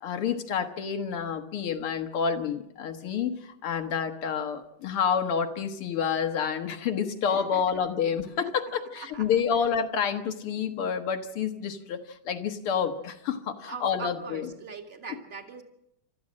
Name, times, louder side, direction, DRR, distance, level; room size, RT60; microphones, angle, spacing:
voice 1, 0.0-14.5, left 7 dB, 85° left, 7 dB, 2.4 m, -29 dB
voice 2, 7.1-8.1 8.4-9.4 13.7-15.6, right 5 dB, 30° right, 4 dB, 2.1 m, -43 dB
28.5 x 14.0 x 7.5 m, 0.85 s
omnidirectional pair, 2.4 m